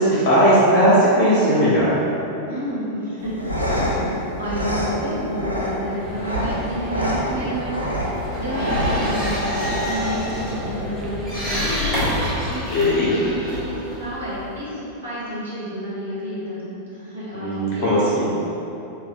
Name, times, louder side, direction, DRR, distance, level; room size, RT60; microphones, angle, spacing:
voice 1, 0.0-1.9 8.4-9.0 12.7-13.2 17.3-18.3, equal, 40° left, -9 dB, 1.2 m, -18 dB
voice 2, 2.5-3.4 3.7-4.0 4.4-7.8 8.1-12.6 13.1-18.0, equal, 75° right, -10 dB, 1.1 m, -30 dB
sound 1, 3.2-11.2, equal, 85° left, 0.4 m, -26 dB
sound 2, 6.0-12.3, equal, 20° right, 0.4 m, -34 dB
sound 3, 8.1-14.6, left 1 dB, 20° left, 1.3 m, -29 dB
3.9 x 2.5 x 2.6 m, 2.9 s
figure-of-eight pair, 90°, 0 cm